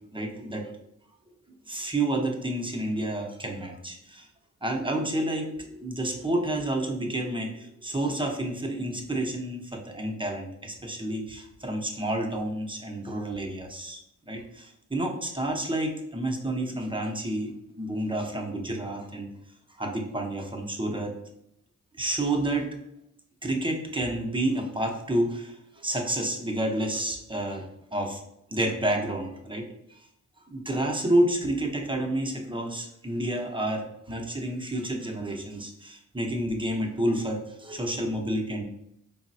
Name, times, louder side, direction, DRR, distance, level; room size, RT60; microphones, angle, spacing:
voice 1, 0.1-0.7 1.7-4.3 4.6-14.0 14.3-19.3 19.8-21.2 21.9-22.8 23.4-28.2 28.5-30.0 30.4-38.6, right 1 dB, 15° right, 1 dB, 0.7 m, -30 dB
3.7 x 2.0 x 2.6 m, 0.77 s
supercardioid pair, 45°, 32 cm